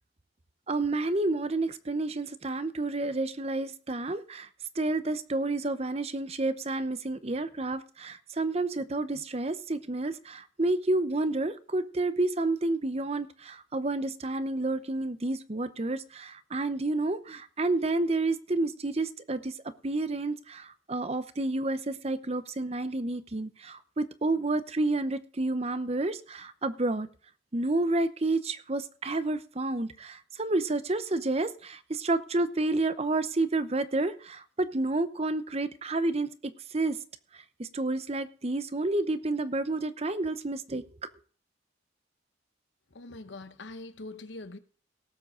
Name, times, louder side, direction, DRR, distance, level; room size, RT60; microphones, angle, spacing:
voice 1, 0.7-4.5 4.7-27.1 27.5-37.0 37.6-40.9, right 2 dB, 30° right, 0.7 m, -30 dB
voice 2, 42.9-44.6, left 2 dB, 70° left, 1.0 m, -43 dB
18.0 x 7.6 x 3.8 m
head